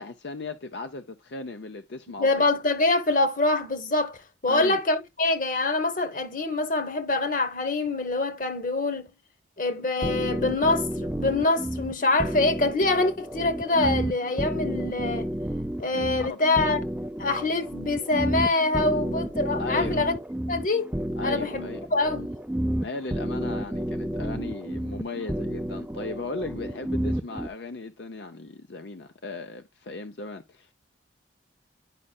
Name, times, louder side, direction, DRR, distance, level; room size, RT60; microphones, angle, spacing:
voice 1, 0.0-2.4 4.5-4.8 15.9-16.4 19.6-20.0 21.2-21.9 22.8-30.7, left 3 dB, 70° left, 0.6 m, -37 dB
voice 2, 2.2-4.2 4.4-9.1 9.6-15.3 15.8-16.8 17.2-20.2 20.5-20.9 21.2-22.3, left 2 dB, 45° left, 1.2 m, -25 dB
sound 1, 10.0-27.5, right 1 dB, 5° right, 0.4 m, -31 dB
10.0 x 5.4 x 2.3 m
head